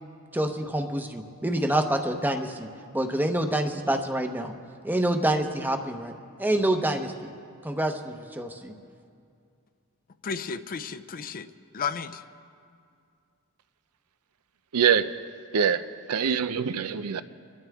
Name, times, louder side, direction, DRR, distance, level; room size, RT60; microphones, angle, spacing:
voice 1, 0.3-2.7 2.9-4.5 4.8-6.1 6.4-7.3 7.6-8.7, right 1 dB, 10° right, 0.8 m, -27 dB
voice 2, 10.2-11.5 11.7-12.2, left 6 dB, 40° left, 0.5 m, -33 dB
voice 3, 14.7-15.1 15.5-15.8 16.1-17.2, right 7 dB, 90° right, 0.6 m, -24 dB
25.5 x 12.5 x 3.5 m
head